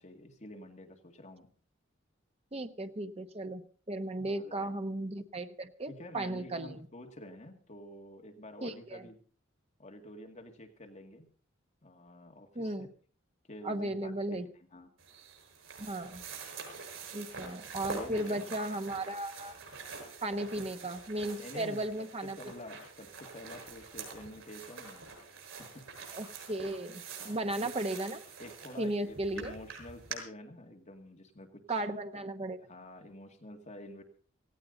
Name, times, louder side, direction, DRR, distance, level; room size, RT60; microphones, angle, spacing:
voice 1, 0.0-1.5 4.2-4.7 5.9-9.2 9.8-11.3 11.8-12.9 13.5-14.9 17.9-18.4 20.4-20.5 21.4-25.1 25.6-25.8 27.2-27.7 28.4-31.9 32.7-34.0, left 1 dB, 35° left, 3 dB, 2.2 m, -49 dB
voice 2, 2.5-6.8 8.6-9.0 12.5-12.9 13.6-14.5 15.8-16.2 17.1-19.5 20.2-22.4 26.1-28.2 28.8-29.6 31.7-32.6, right 1 dB, 30° right, 8 dB, 1.1 m, -35 dB
sound 1, 15.0-30.2, right 4 dB, 85° right, 6.9 m, -46 dB
18.0 x 16.5 x 3.9 m, 0.41 s
head